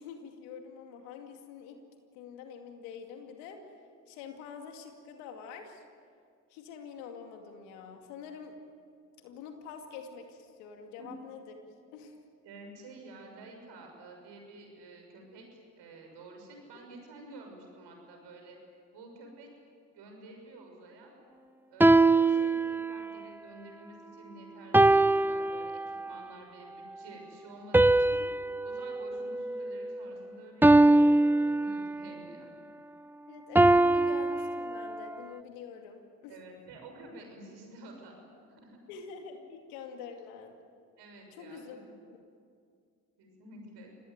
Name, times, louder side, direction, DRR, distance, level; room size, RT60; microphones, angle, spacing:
voice 1, 0.0-1.8 2.1-3.6 4.1-5.8 6.5-8.5 9.2-11.5 11.9-12.2 33.3-36.4 38.9-40.6 41.3-41.8 42.1-42.2, left 6 dB, 85° left, 4 dB, 2.4 m, -46 dB
voice 2, 12.4-18.6 18.9-19.5 19.9-21.1 21.7-28.1 28.6-32.5 36.3-38.1 38.4-38.8 41.0-41.9 43.2-43.9, right 2 dB, 75° right, 2 dB, 6.4 m, -50 dB
sound 1, 21.8-23.2 24.7-26.1 27.7-30.1 30.6-32.1 33.6-35.1, right 2 dB, 5° right, 0.6 m, -23 dB
26.5 x 19.5 x 9.5 m, 2.2 s
hypercardioid pair, 45°, 42 cm